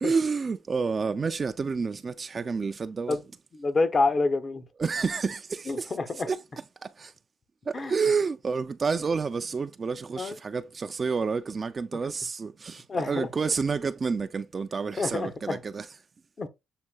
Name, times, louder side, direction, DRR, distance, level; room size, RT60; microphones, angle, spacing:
voice 1, 0.0-3.2 4.8-5.9 6.3-6.4 6.8-7.1 7.7-15.9, right 5 dB, 35° right, 0.3 m, -29 dB
voice 2, 3.6-4.6 5.7-6.3 7.7-7.9 10.2-10.3 12.9-13.3 15.0-15.6 16.4-16.5, left 3 dB, 35° left, 0.7 m, -27 dB
7.4 x 2.6 x 2.2 m
cardioid pair, 90°, 0 cm